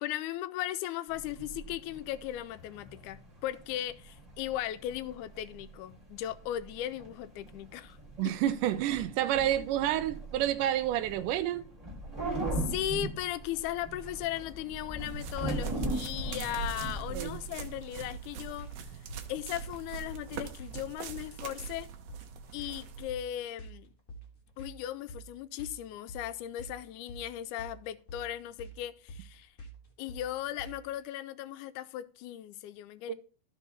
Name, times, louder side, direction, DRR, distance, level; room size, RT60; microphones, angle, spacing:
voice 1, 0.0-8.0 12.2-18.7 19.3-21.9 22.5-23.9 24.6-29.5 30.0-33.1, left 13 dB, 80° left, 2.0 m, -37 dB
sound 1, 1.1-17.5, right 2 dB, 15° right, 2.0 m, -40 dB
voice 2, 8.2-11.7 17.1-17.4 33.1-33.2, right 12 dB, 85° right, 2.1 m, -29 dB
sound 2, 15.0-23.1, right 6 dB, 65° right, 1.8 m, -43 dB
sound 3, 15.1-31.0, right 1 dB, 35° left, 1.2 m, -48 dB
13.5 x 4.6 x 4.1 m
omnidirectional pair, 3.6 m